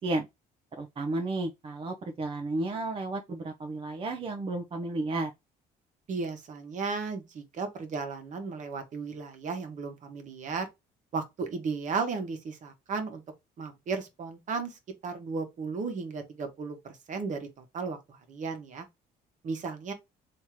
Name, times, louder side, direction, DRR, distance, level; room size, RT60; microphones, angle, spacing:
voice 1, 0.8-5.3, right 2 dB, 30° right, 0.6 m, -32 dB
voice 2, 6.1-10.7 11.1-13.2 13.6-18.8 19.4-19.9, right 4 dB, 45° right, 1.2 m, -35 dB
3.6 x 2.8 x 3.0 m
cardioid pair, 110°, 17 cm